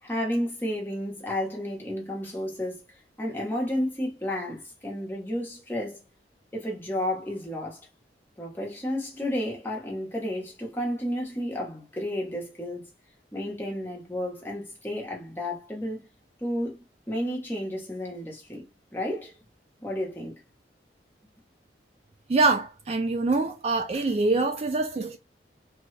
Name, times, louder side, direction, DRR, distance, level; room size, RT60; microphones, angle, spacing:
voice 1, 0.0-2.8 3.2-6.0 6.5-7.8 8.4-12.9 13.3-16.1 16.4-18.6 18.9-19.4 19.8-20.4, left 1 dB, 10° left, 0.9 m, -32 dB
voice 2, 22.3-25.2, right 3 dB, 35° right, 0.3 m, -24 dB
2.8 x 2.2 x 3.1 m
head